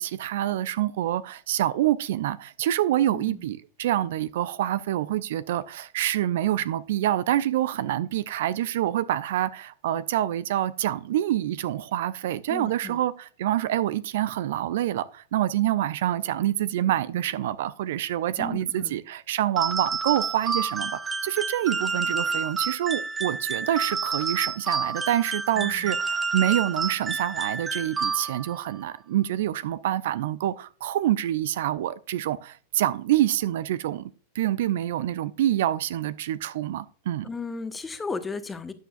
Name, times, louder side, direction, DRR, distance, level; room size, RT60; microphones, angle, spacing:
voice 1, 0.0-34.0 34.3-37.3, right 12 dB, 55° right, 0.5 m, -26 dB
voice 2, 3.1-3.5 12.5-13.0 18.4-19.0 25.5-26.0 37.2-38.7, left 4 dB, 15° left, 1.2 m, -35 dB
sound 1, 19.6-28.6, right 4 dB, 15° right, 0.9 m, -29 dB
12.5 x 9.1 x 2.5 m
figure-of-eight pair, 90°, 0 cm